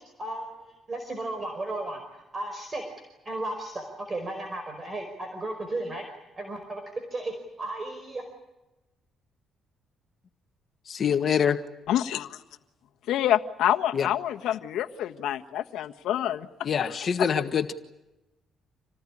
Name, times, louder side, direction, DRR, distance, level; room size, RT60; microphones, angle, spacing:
voice 1, 0.2-2.9 3.2-6.1 6.4-6.8 7.1-8.2, right 2 dB, 25° right, 5 dB, 4.9 m, -34 dB
voice 2, 10.9-11.6 13.9-14.1 16.6-17.7, left 7 dB, 45° left, 8 dB, 1.5 m, -25 dB
voice 3, 11.9-12.4 13.1-16.5 16.8-16.9, left 11 dB, 85° left, 6 dB, 1.4 m, -27 dB
28.0 x 19.0 x 10.0 m, 1.0 s
cardioid pair, 115°, 0 cm